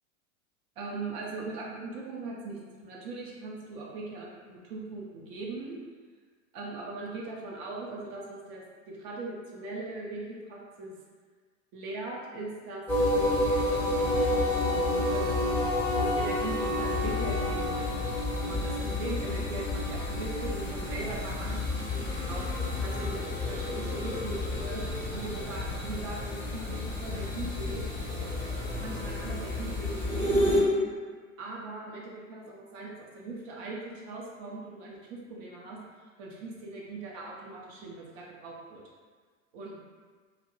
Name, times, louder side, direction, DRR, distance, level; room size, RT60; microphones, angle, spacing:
voice 1, 0.8-5.8 6.5-10.9 11.7-14.3 15.1-18.1 18.4-24.8 25.1-27.8 28.8-30.9 31.4-35.8 36.2-38.8 39.5-39.8, right 2 dB, 50° right, -3 dB, 0.6 m, -40 dB
sound 1, 12.9-30.6, left 1 dB, 5° left, 0.6 m, -30 dB
Wind instrument woodwind instrument, 14.0-18.3, left 3 dB, 70° left, 0.5 m, -33 dB
2.6 x 2.1 x 2.5 m, 1.5 s
hypercardioid pair, 85°, 40 cm